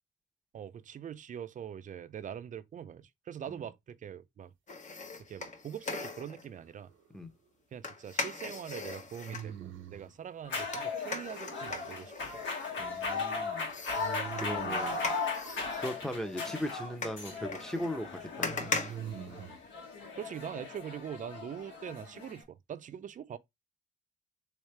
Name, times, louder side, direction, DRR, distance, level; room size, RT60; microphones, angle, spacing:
voice 1, 0.5-4.5 5.2-6.9 7.7-12.4 20.2-23.4, right 9 dB, 40° right, 0.4 m, -43 dB
sound 1, 4.7-6.5 7.8-9.5 10.7-13.2 13.7-19.9 20.3-20.4, left 3 dB, 40° left, 0.9 m, -40 dB
sound 2, 6.5-7.2 9.2-10.2 14.0-15.0 18.3-19.6, right 9 dB, 80° right, 0.7 m, -44 dB
sound 3, 10.4-22.4, left 4 dB, 70° left, 1.3 m, -37 dB
voice 2, 12.8-13.7 14.3-15.0 15.8-18.7, equal, 5° left, 0.7 m, -38 dB
3.2 x 3.2 x 3.2 m
cardioid pair, 90°, 20 cm